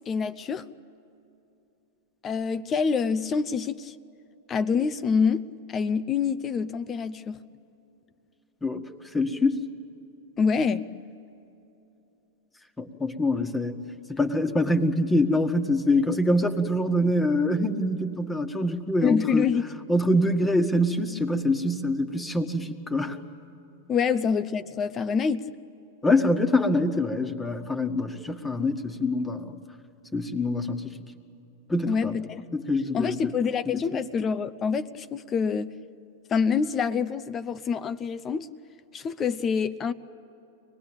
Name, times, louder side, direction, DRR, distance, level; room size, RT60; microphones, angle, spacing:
voice 1, 0.1-0.6 2.2-3.9 4.5-7.4 10.4-10.9 19.0-19.6 23.9-25.5 31.9-32.5 32.9-35.7 36.3-38.5 38.9-39.9, left 6 dB, 30° left, 14 dB, 0.7 m, -26 dB
voice 2, 9.1-9.6 12.8-13.8 14.1-19.5 19.9-23.2 26.0-29.6 30.1-31.0 31.7-32.1 32.5-33.3 33.7-33.8, left 1 dB, 10° left, 6 dB, 1.6 m, -25 dB
25.0 x 19.5 x 8.8 m, 2.9 s
hypercardioid pair, 100°, 0 cm